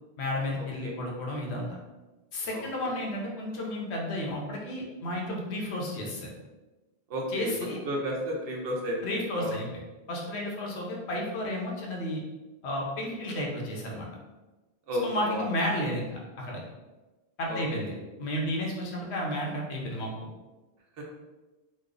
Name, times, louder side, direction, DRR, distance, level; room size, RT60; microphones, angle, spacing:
voice 1, 0.2-1.7 2.3-6.3 7.3-7.8 9.0-9.7 10.1-12.2 12.6-14.1 15.0-16.6 17.4-17.9 18.2-20.1, left 1 dB, 80° left, -2 dB, 1.0 m, -32 dB
voice 2, 2.5-2.9 7.1-7.5 7.9-9.5 14.9-15.4 17.5-17.9 21.0-21.1, equal, 65° right, -1 dB, 0.9 m, -33 dB
3.1 x 2.0 x 3.6 m, 1.1 s
omnidirectional pair, 1.1 m